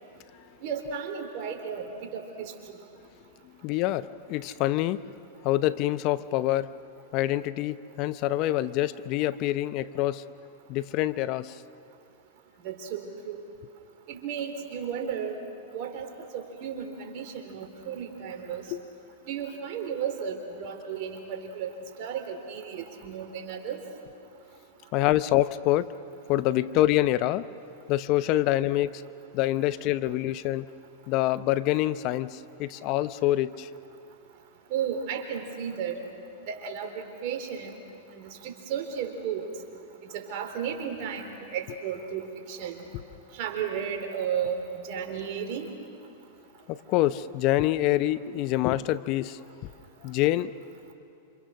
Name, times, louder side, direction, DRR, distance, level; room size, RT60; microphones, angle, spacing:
voice 1, 0.6-2.5 12.6-13.4 14.1-15.4 15.7-16.1 16.3-18.6 19.3-21.7 22.0-23.8 34.7-36.0 36.5-37.8 38.1-39.5 40.1-42.8 43.4-45.7, right 7 dB, 50° right, 4 dB, 3.8 m, -34 dB
voice 2, 3.6-5.1 5.4-6.8 7.1-10.2 10.7-11.6 18.7-18.8 24.9-25.9 26.3-27.5 27.9-29.0 29.3-30.7 31.1-33.7 46.7-49.7 50.0-50.5, left 15 dB, 45° left, 15 dB, 0.7 m, -26 dB
28.5 x 27.0 x 6.4 m, 2.6 s
hypercardioid pair, 115°, 0 cm